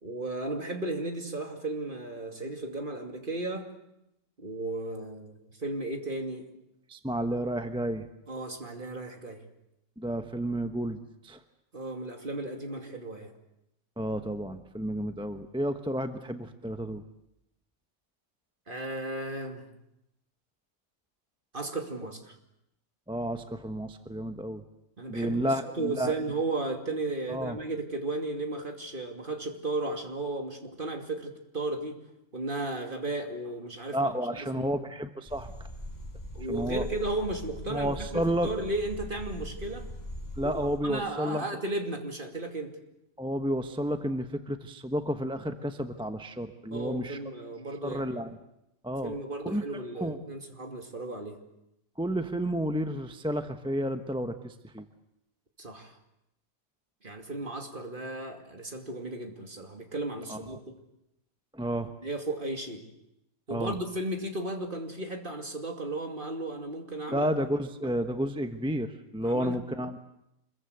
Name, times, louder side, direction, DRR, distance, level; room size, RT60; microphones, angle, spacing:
voice 1, 0.0-3.7 4.4-6.5 8.3-9.4 11.7-13.3 18.7-19.7 21.5-22.3 25.0-32.0 32.3-34.6 36.3-39.9 40.4-40.5 40.8-42.7 46.7-48.2 49.0-51.4 55.6-55.9 57.0-60.6 62.0-62.8 63.5-67.3 67.8-67.9 69.2-69.6, right 2 dB, 35° right, 4 dB, 2.7 m, -35 dB
voice 2, 6.9-8.1 10.0-11.0 11.2-11.4 14.0-17.0 23.1-24.6 25.1-26.2 27.3-27.6 33.9-35.5 36.5-36.8 37.7-38.5 40.4-41.4 43.2-47.2 47.8-48.4 48.8-49.1 49.4-49.6 50.0-50.2 52.0-54.9 60.3-60.6 61.5-61.9 63.5-63.7 67.1-70.0, equal, 5° right, 7 dB, 0.9 m, -31 dB
sound 1, 35.3-40.8, left 1 dB, 15° left, 4.2 m, -41 dB
26.0 x 22.0 x 8.1 m, 0.83 s
omnidirectional pair, 1.5 m